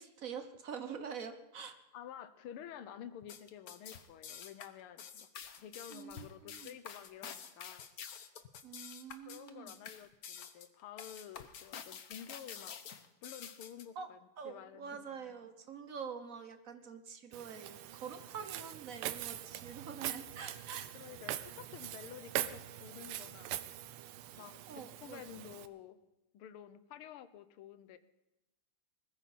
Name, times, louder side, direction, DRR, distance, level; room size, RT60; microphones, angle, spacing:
voice 1, 0.0-1.7 5.9-6.7 8.6-9.7 14.0-14.1 14.4-20.9 24.7-25.2, right 6 dB, 55° right, 8 dB, 1.0 m, -46 dB
voice 2, 1.9-5.3 5.6-7.8 9.3-12.7 13.2-14.2 14.4-15.0 20.9-23.6 24.3-26.0 26.3-28.0, left 10 dB, 80° left, 12 dB, 1.7 m, -51 dB
sound 1, 3.2-13.9, left 7 dB, 55° left, 1.1 m, -48 dB
Walk footsteps, 17.3-25.7, right 12 dB, 85° right, 1.6 m, -43 dB
20.5 x 14.0 x 4.2 m, 0.97 s
omnidirectional pair, 2.4 m